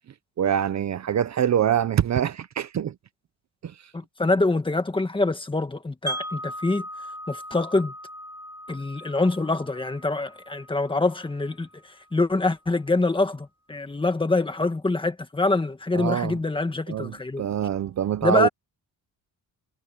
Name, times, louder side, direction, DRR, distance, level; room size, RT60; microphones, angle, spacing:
voice 1, 0.4-2.9 3.6-3.7 15.9-16.4 16.9-18.5, right 9 dB, 45° right, 0.7 m, -24 dB
voice 2, 3.9-6.8 7.3-7.9 8.7-17.4 18.2-18.5, left 2 dB, 15° left, 1.6 m, -25 dB
Wind chime, 6.1-12.0, equal, 10° right, 3.6 m, -39 dB
wide cardioid pair, 170°, 38 cm